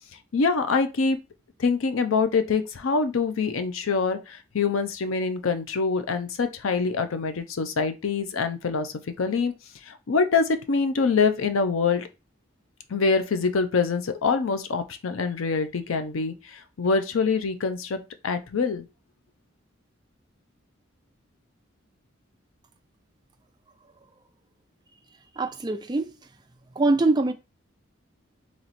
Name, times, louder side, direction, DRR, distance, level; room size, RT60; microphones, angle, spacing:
voice 1, 0.3-1.2 1.6-9.5 9.9-12.1 12.9-18.9, left 4 dB, 80° left, 0.5 m, -25 dB
voice 2, 25.4-26.1 26.8-27.3, right 2 dB, 20° right, 0.4 m, -23 dB
3.0 x 3.0 x 4.1 m
head